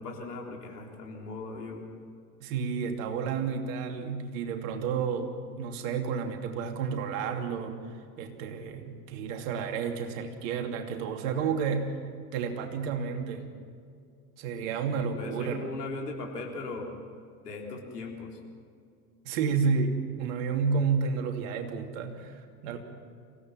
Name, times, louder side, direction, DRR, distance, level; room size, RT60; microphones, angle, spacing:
voice 1, 0.0-1.8 14.9-16.9 17.4-18.4, left 3 dB, 80° left, 0 dB, 3.8 m, -38 dB
voice 2, 2.4-11.9 12.3-13.4 14.4-15.7 19.2-22.8, right 6 dB, 55° right, 4 dB, 2.9 m, -31 dB
27.5 x 16.5 x 6.0 m, 2.3 s
figure-of-eight pair, 80°, 47 cm